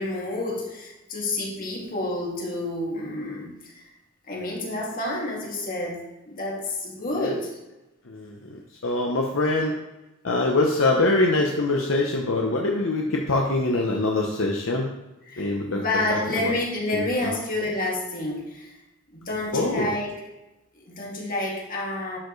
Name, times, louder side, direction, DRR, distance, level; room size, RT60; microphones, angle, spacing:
voice 1, 0.0-3.7 4.3-6.0 6.3-7.5 15.3-18.7 19.1-20.2 20.8-22.2, left 2 dB, 45° left, -3 dB, 2.1 m, -29 dB
voice 2, 8.0-9.7 10.2-14.9 15.4-15.8 16.1-16.5 16.9-17.4 19.5-19.9, left 2 dB, 70° left, 0 dB, 0.8 m, -24 dB
11.5 x 4.5 x 3.2 m, 0.99 s
head